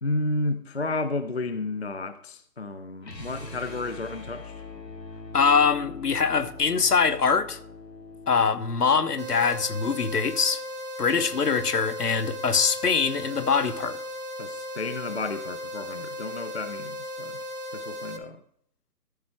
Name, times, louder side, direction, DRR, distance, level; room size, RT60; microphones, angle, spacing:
voice 1, 0.0-4.5 14.4-17.4 17.7-18.4, left 2 dB, 45° left, 0.4 m, -32 dB
sound 1, 3.0-9.1, left 3 dB, 85° left, 1.9 m, -42 dB
voice 2, 5.3-7.6 8.3-10.6 11.0-14.0, left 5 dB, 70° left, 1.0 m, -23 dB
sound 2, 9.2-18.2, left 1 dB, 70° right, 1.8 m, -36 dB
14.0 x 5.8 x 4.5 m
figure-of-eight pair, 145°, 48 cm